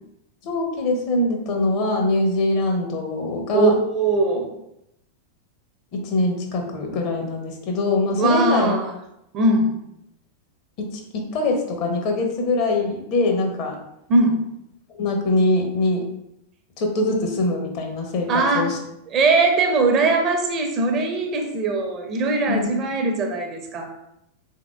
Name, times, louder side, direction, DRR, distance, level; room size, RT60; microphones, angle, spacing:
voice 1, 0.4-3.7 5.9-8.8 10.8-13.8 15.0-16.0 16.8-18.8 22.5-22.7, left 2 dB, 40° left, 3 dB, 0.8 m, -23 dB
voice 2, 3.5-4.5 8.2-8.9 9.3-9.7 14.1-14.4 18.3-18.7 19.1-23.9, right 2 dB, 35° right, 4 dB, 0.6 m, -20 dB
3.6 x 3.5 x 2.3 m, 0.80 s
figure-of-eight pair, 90°, 0 cm